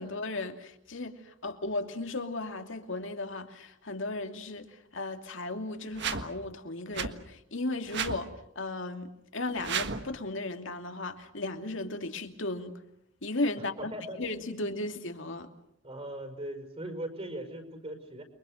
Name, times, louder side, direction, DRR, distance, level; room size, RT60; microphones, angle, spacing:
voice 1, 0.0-12.8 13.2-13.9 14.2-15.5, left 2 dB, 70° left, 2.7 m, -35 dB
sound 1, 5.9-6.3 6.9-7.1 7.9-8.2 9.5-10.1, right 6 dB, 60° right, 1.6 m, -32 dB
voice 2, 13.6-14.2 15.8-18.2, right 1 dB, 30° right, 5.3 m, -39 dB
30.0 x 24.0 x 6.5 m
head